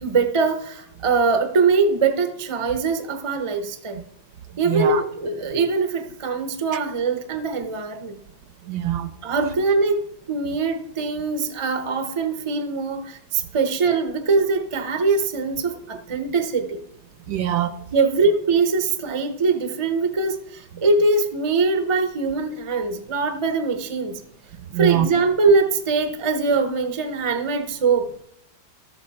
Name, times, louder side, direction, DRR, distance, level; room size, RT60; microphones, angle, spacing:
voice 1, 0.0-4.0 4.6-8.2 9.2-16.8 17.9-24.2 24.8-28.1, right 4 dB, 40° right, 0.4 m, -22 dB
voice 2, 4.6-5.0 6.7-6.8 8.7-9.1 17.3-17.8 24.7-25.1, right 11 dB, 70° right, 1.3 m, -23 dB
13.0 x 7.7 x 4.2 m
omnidirectional pair, 2.1 m